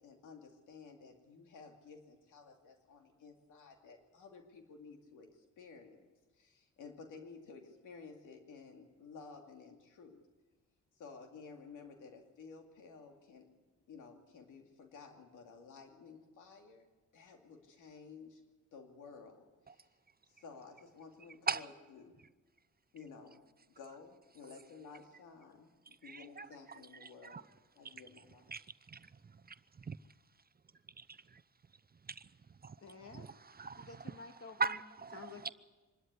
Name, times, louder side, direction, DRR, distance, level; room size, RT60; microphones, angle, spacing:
voice 1, 0.0-6.0 6.3-10.2 11.0-13.5 13.9-18.4 18.7-19.9 20.3-22.2 22.9-27.5 27.7-28.5, left 5 dB, 85° left, 2.6 m, -54 dB
voice 2, 26.0-27.4 27.8-27.9 28.5-29.1 29.9-30.0 31.0-31.4 32.1-32.2 32.6-32.8 33.1-33.3 33.6-33.9 34.6-35.5, right 4 dB, 30° right, 0.6 m, -40 dB
voice 3, 32.8-33.3 33.8-34.8 35.1-35.5, left 4 dB, 50° left, 2.5 m, -51 dB
25.0 x 13.0 x 9.7 m
cardioid pair, 60°, 30 cm